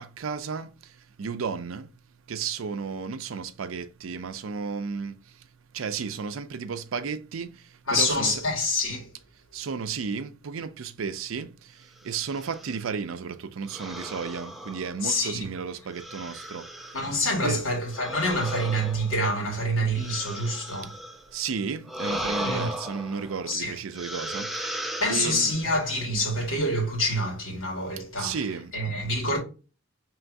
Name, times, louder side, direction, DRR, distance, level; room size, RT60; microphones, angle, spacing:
voice 1, 0.0-1.9 2.3-8.4 9.5-17.0 17.4-17.7 20.8-20.9 21.3-25.5 28.2-28.7, right 5 dB, 85° right, 0.5 m, -33 dB
voice 2, 7.9-9.1 15.0-15.4 16.9-20.9 22.4-22.7 23.5-23.7 25.0-28.4 28.7-29.4, left 1 dB, 75° left, 1.7 m, -26 dB
sound 1, 12.1-12.8 13.7-15.3 15.9-17.2 17.9-21.3 21.8-23.5 23.9-25.7, right 1 dB, ahead, 0.4 m, -36 dB
4.5 x 3.1 x 2.5 m
head